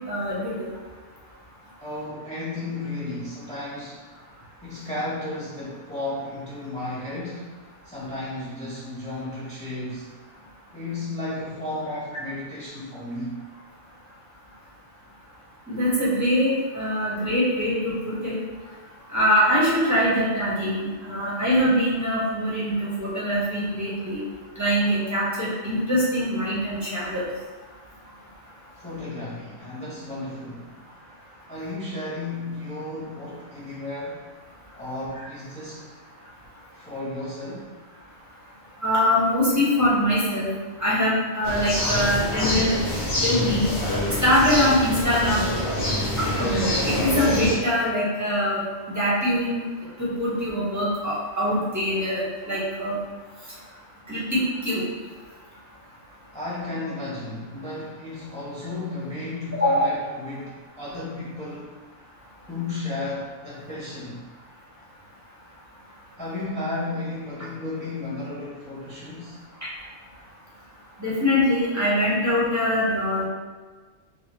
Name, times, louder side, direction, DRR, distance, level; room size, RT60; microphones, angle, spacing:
voice 1, 0.1-0.7 15.7-18.4 19.1-24.2 24.6-27.2 38.8-40.5 40.8-42.8 43.2-43.7 44.2-45.5 46.2-48.6 48.9-49.6 50.0-53.0 54.1-54.8 59.6-59.9 69.6-69.7 71.0-73.2, equal, 15° right, -8 dB, 0.8 m, -23 dB
voice 2, 1.8-4.1 4.6-10.2 10.7-13.4 28.7-30.8 31.5-34.3 34.7-35.9 36.7-37.7 56.3-61.8 62.5-64.3 66.2-69.4, left 2 dB, 10° left, -9 dB, 0.5 m, -33 dB
sound 1, 41.4-47.5, left 1 dB, 75° left, 1.3 m, -26 dB
4.2 x 2.3 x 2.9 m, 1.4 s
omnidirectional pair, 1.1 m